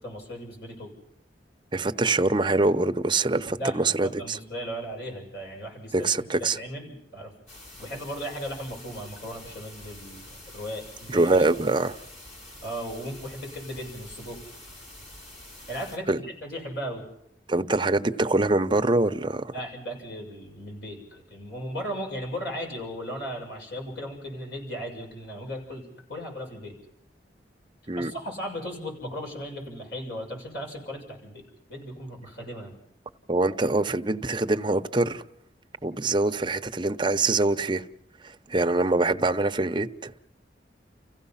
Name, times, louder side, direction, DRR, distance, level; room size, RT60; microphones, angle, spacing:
voice 1, 0.0-0.9 3.6-3.8 4.0-7.3 7.8-11.5 12.6-14.4 15.7-17.0 19.5-26.7 27.9-31.4 31.7-32.8, equal, 65° left, 6.7 m, -36 dB
voice 2, 1.7-4.4 5.9-6.6 11.1-12.0 16.1-16.2 17.5-19.5 27.9-28.1 33.3-35.2 35.8-37.8 38.2-40.1, right 2 dB, 25° right, 0.8 m, -24 dB
sound 1, 7.5-16.0, left 1 dB, 45° left, 3.8 m, -46 dB
30.0 x 16.0 x 5.7 m
head